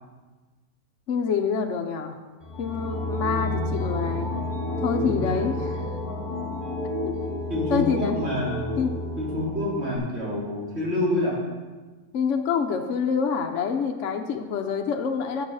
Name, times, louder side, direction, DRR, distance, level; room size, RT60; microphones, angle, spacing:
voice 1, 1.1-2.2 2.6-4.3 4.8-5.8 7.0-7.1 7.7-8.2 8.8-8.9 12.1-15.5, left 6 dB, 65° left, 4 dB, 0.9 m, -26 dB
sound 1, 2.4-10.0, left 1 dB, 35° left, 1.9 m, -30 dB
voice 2, 4.9-5.4 7.5-8.8 9.2-11.4, left 1 dB, 45° right, -6 dB, 3.3 m, -27 dB
8.5 x 5.5 x 7.7 m, 1.3 s
omnidirectional pair, 1.5 m